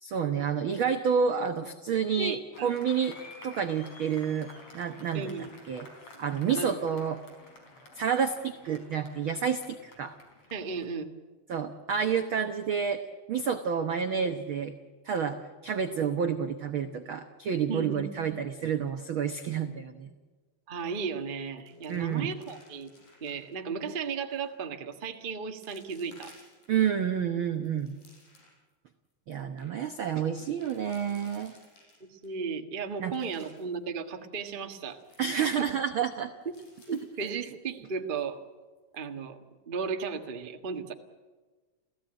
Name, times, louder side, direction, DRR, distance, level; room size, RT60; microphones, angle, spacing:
voice 1, 0.0-3.1 3.4-5.3 5.7-5.9 6.2-7.2 8.0-10.1 11.5-13.0 13.3-14.7 15.0-20.1 21.9-22.3 26.7-28.0 29.3-31.6 33.0-33.1 35.2-36.3, right 7 dB, 80° right, 6 dB, 1.1 m, -29 dB
voice 2, 2.2-2.8 5.1-5.5 6.5-6.8 10.5-11.0 17.7-18.4 20.7-22.9 23.2-26.3 32.0-35.0 35.3-35.7 36.9-38.4 38.9-39.4 39.7-40.9, right 5 dB, 50° right, 4 dB, 0.5 m, -35 dB
Applause, 2.5-10.9, left 2 dB, 45° left, 5.4 m, -51 dB
sound 1, 20.9-21.2 21.5-23.5 24.2-24.6 25.1-25.2 25.6-26.9 27.4-28.7 29.1-29.2 29.4-29.7 30.4-32.3 32.8-33.8 34.9-36.0 36.4-37.9 38.2-38.3 38.8-39.0, left 2 dB, 85° left, 7.4 m, -59 dB
29.0 x 16.0 x 9.0 m, 1.3 s
omnidirectional pair, 3.9 m